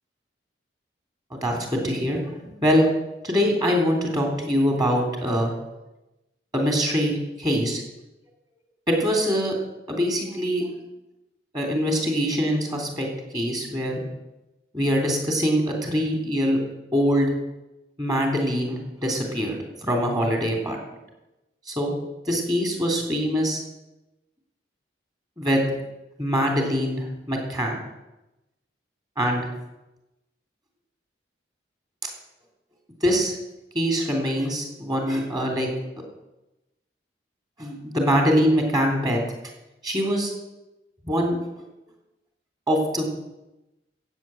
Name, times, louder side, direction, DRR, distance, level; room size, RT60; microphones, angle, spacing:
voice 1, 1.3-2.9 3.2-5.5 6.5-7.8 8.9-9.5 9.9-10.6 11.5-13.1 13.3-14.0 14.7-16.6 16.9-17.3 18.0-20.8 21.7-21.9 22.3-23.6 25.4-25.6 26.2-27.8 29.2-29.5 33.0-33.3 33.7-35.7 37.6-39.2 39.8-40.3 41.0-41.4 42.7-43.1, equal, 20° right, 1 dB, 3.3 m, -23 dB
15.0 x 8.5 x 7.7 m, 0.97 s
head